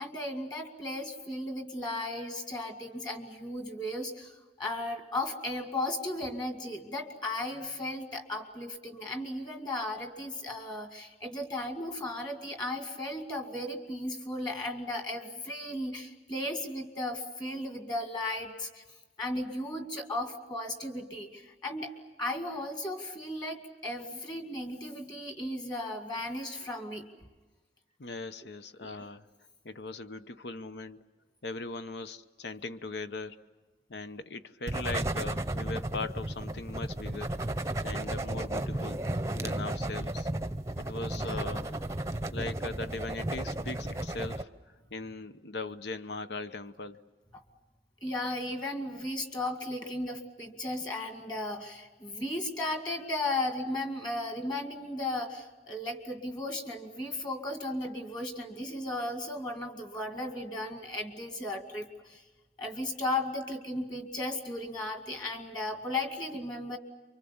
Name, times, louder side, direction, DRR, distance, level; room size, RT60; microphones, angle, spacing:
voice 1, 0.0-18.8 19.2-21.9 22.2-27.1 28.8-29.0 41.1-41.5 48.0-62.2 62.6-66.8, left 1 dB, 25° left, 5 dB, 2.2 m, -35 dB
voice 2, 28.0-29.3 29.6-31.0 31.4-33.4 33.9-37.4 37.8-39.0 39.3-40.3 40.8-41.7 42.3-44.5 44.9-47.0, left 3 dB, 75° left, 11 dB, 0.8 m, -39 dB
sound 1, 34.7-44.4, right 1 dB, 15° right, 0.7 m, -34 dB
28.5 x 24.5 x 7.2 m, 1.2 s
head